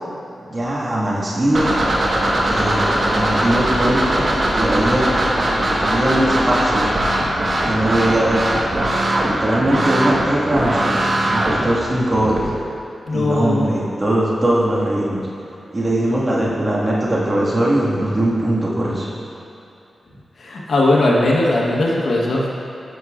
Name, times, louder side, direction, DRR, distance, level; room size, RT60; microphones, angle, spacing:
voice 1, 0.4-1.8 2.4-2.9 3.1-4.3 4.5-5.1 5.8-6.9 7.7-8.4 9.2-12.4 13.1-15.2 15.7-19.1, right 1 dB, 35° right, -6 dB, 1.8 m, -20 dB
sound 1, 1.5-12.4, right 1 dB, 55° right, 1.4 m, -20 dB
voice 2, 13.1-13.6 20.4-22.5, left 2 dB, 70° left, -3 dB, 1.2 m, -18 dB
11.5 x 6.0 x 2.5 m, 2.7 s
cardioid pair, 55°, 0 cm